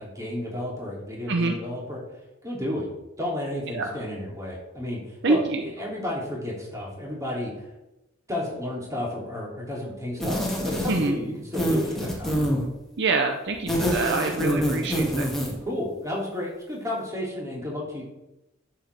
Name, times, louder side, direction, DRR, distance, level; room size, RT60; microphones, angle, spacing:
voice 1, 0.0-2.0 2.4-2.9 3.2-7.5 8.3-12.4 15.6-18.0, left 1 dB, 15° right, -4 dB, 2.8 m, -32 dB
voice 2, 5.2-5.6 10.9-11.1 13.0-15.3, right 3 dB, 60° right, 4 dB, 0.7 m, -25 dB
sound 1, 10.2-11.2 11.5-12.7 13.5-15.6, equal, ahead, 2.0 m, -25 dB
11.0 x 7.2 x 3.4 m, 0.96 s
head